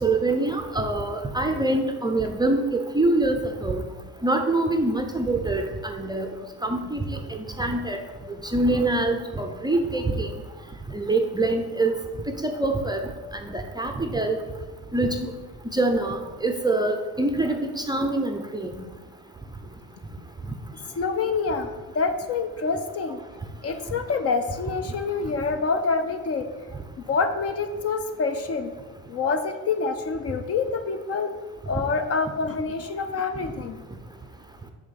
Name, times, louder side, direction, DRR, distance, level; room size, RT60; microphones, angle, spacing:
voice 1, 0.0-3.8 4.2-6.3 6.6-8.0 8.4-10.3 10.9-12.0 12.3-13.1 13.4-14.4 14.9-15.3 15.7-18.7, right 2 dB, 10° right, 4 dB, 0.5 m, -25 dB
voice 2, 21.0-23.2 23.6-26.4 27.0-28.7 29.1-31.3 31.7-33.8, left 4 dB, 35° left, 8 dB, 0.5 m, -26 dB
6.5 x 3.6 x 5.7 m, 1.3 s
supercardioid pair, 90°, 43 cm